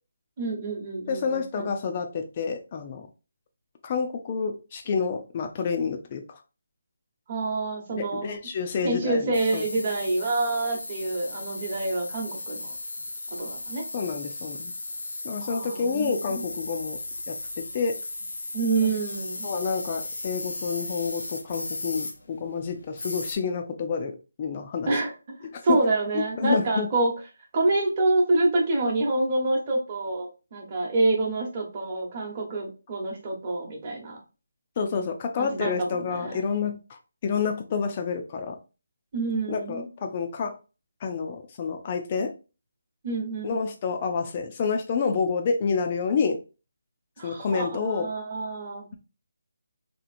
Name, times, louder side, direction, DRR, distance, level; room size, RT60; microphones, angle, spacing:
voice 1, 0.4-1.7 7.3-8.4 8.8-12.7 13.4-13.8 15.4-16.4 18.5-19.5 24.9-25.1 25.6-27.1 27.5-34.2 35.4-36.4 39.1-39.9 43.0-43.6 47.2-48.9, right 2 dB, 30° right, -1 dB, 1.0 m, -27 dB
voice 2, 1.1-3.1 3.8-6.2 7.9-9.6 13.9-14.7 15.2-17.0 17.3-17.4 17.7-18.0 18.8-18.9 19.4-24.9 25.7-25.8 26.1-26.9 34.8-36.8 37.2-38.6 39.5-40.5 41.0-42.3 43.4-46.4 47.2-48.1, left 5 dB, 30° left, 5 dB, 0.4 m, -28 dB
sound 1, 9.3-23.3, left 2 dB, 80° left, 0.9 m, -36 dB
2.9 x 2.9 x 2.5 m, 0.31 s
figure-of-eight pair, 165°, 0 cm